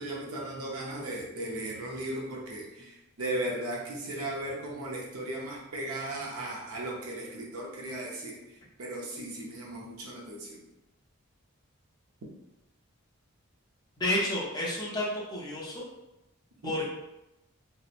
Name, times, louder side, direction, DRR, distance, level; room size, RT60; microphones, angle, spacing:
voice 1, 0.0-10.6 16.6-16.7, right 1 dB, 80° right, -2 dB, 0.6 m, -36 dB
voice 2, 14.0-15.8 16.6-16.8, left 1 dB, 20° left, -5 dB, 0.5 m, -30 dB
2.9 x 2.0 x 2.4 m, 0.93 s
head